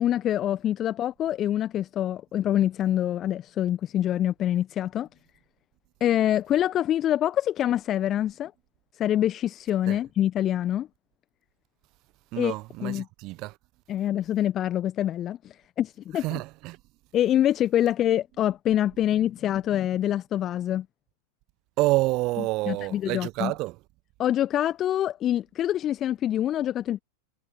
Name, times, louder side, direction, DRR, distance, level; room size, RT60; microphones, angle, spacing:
voice 1, 0.0-5.1 6.0-8.5 9.0-10.9 12.4-12.5 12.8-13.1 13.9-16.4 17.1-20.8 22.7-23.5 24.2-27.0, left 11 dB, 30° left, 1.3 m, -25 dB
voice 2, 12.3-13.6 16.1-16.8 21.8-23.8, right 21 dB, 40° right, 1.3 m, -28 dB
figure-of-eight pair, 90°, 0 cm